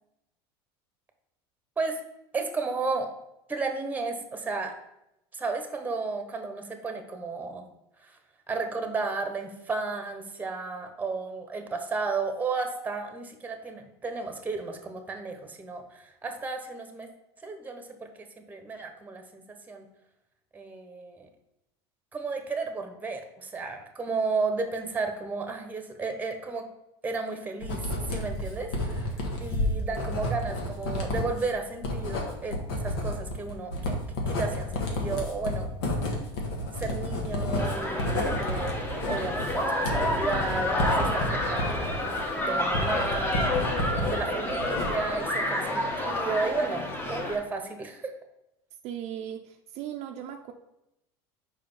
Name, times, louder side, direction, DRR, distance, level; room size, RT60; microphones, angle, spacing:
voice 1, 2.3-3.1 3.5-4.8 5.3-7.6 8.0-8.2 8.5-17.1 17.4-19.9 20.5-21.3 22.1-26.7 27.0-34.0 34.3-35.7 36.8-48.1, right 4 dB, 15° right, 5 dB, 1.1 m, -33 dB
Writing, 27.6-44.1 44.5-45.2, left 1 dB, 80° left, 1.7 m, -31 dB
sound 1, 37.6-47.4, left 1 dB, 15° left, 1.2 m, -29 dB
voice 2, 48.8-50.5, right 10 dB, 55° right, 4 dB, 0.6 m, -38 dB
5.0 x 5.0 x 5.6 m, 0.87 s
supercardioid pair, 115°, 13 cm